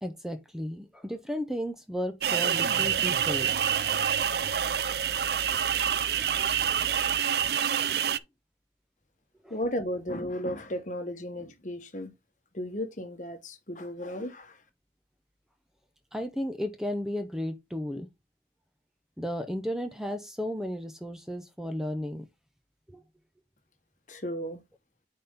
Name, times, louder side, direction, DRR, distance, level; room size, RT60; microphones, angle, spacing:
voice 1, 0.0-3.5 3.9-4.0 8.1-8.2 9.4-9.6 16.1-18.1 19.2-22.3 22.9-23.0, equal, 5° right, 0.8 m, -34 dB
sound 1, 2.2-8.2, right 8 dB, 65° right, 0.5 m, -27 dB
voice 2, 9.5-12.1 12.5-14.6 24.1-24.6, equal, 45° left, 1.2 m, -34 dB
9.3 x 4.3 x 3.6 m
head